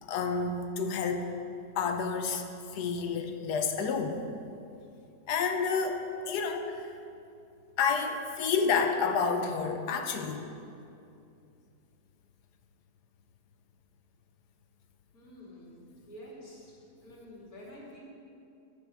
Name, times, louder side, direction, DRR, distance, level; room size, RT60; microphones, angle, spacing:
voice 1, 0.0-1.3 1.8-2.4 2.7-4.2 5.3-6.9 7.8-10.5, left 5 dB, 90° left, 6 dB, 1.4 m, -29 dB
voice 2, 15.1-16.7 17.0-18.0, equal, 65° left, -5 dB, 3.1 m, -49 dB
12.5 x 5.9 x 6.1 m, 2.6 s
omnidirectional pair, 1.7 m